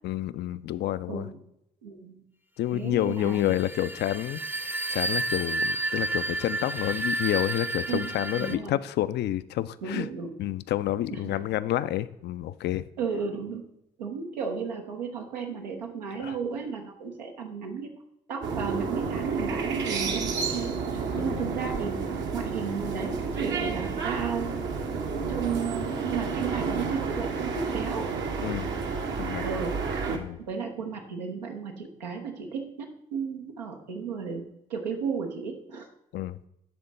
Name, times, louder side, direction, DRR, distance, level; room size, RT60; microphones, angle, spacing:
voice 1, 0.0-1.3 2.6-10.1 10.4-12.8 16.2-16.4 21.2-21.5 28.4-28.7 29.2-29.4 30.1-30.4 36.1-36.4, left 13 dB, 55° left, 15 dB, 0.4 m, -29 dB
voice 2, 1.1-1.4 1.8-2.2 2.7-3.6 7.9-8.1 8.4-8.8 9.8-10.4 11.1-11.5 13.0-13.6 14.0-17.9 18.3-24.5 25.3-28.1 29.4-29.8 30.1-35.9, right 6 dB, 90° right, 2 dB, 0.8 m, -34 dB
sound 1, 3.2-8.6, right 2 dB, 10° right, 0.6 m, -31 dB
sound 2, 18.4-30.2, right 5 dB, 60° right, 0.9 m, -31 dB
10.5 x 3.7 x 3.9 m, 0.80 s
hypercardioid pair, 40°, 21 cm